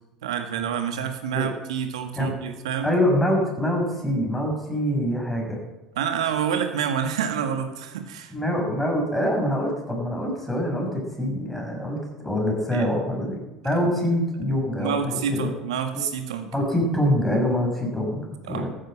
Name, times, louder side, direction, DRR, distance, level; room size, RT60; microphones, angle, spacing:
voice 1, 0.2-2.9 6.0-8.3 12.7-12.9 14.8-16.5 18.5-18.7, right 7 dB, 70° right, 7 dB, 1.8 m, -28 dB
voice 2, 2.8-5.6 8.3-13.4 13.6-15.6 15.9-16.0 16.5-18.7, equal, 5° left, 0 dB, 6.3 m, -25 dB
14.0 x 9.7 x 7.5 m, 1.0 s
figure-of-eight pair, 70°, 3 cm